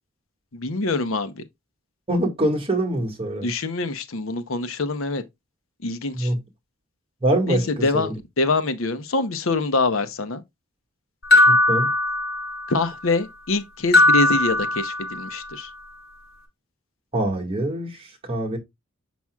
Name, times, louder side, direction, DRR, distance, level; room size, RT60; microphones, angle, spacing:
voice 1, 0.5-1.3 3.4-5.2 5.8-6.3 7.5-8.1 8.4-10.4 12.7-15.7, left 3 dB, 75° left, 0.9 m, -25 dB
voice 2, 2.1-3.5 6.1-6.4 7.2-8.1 11.5-11.9 17.1-18.6, right 1 dB, 25° right, 1.9 m, -24 dB
sound 1, 11.3-12.8 13.9-15.4, left 2 dB, 50° left, 2.2 m, -19 dB
7.1 x 6.0 x 2.3 m
head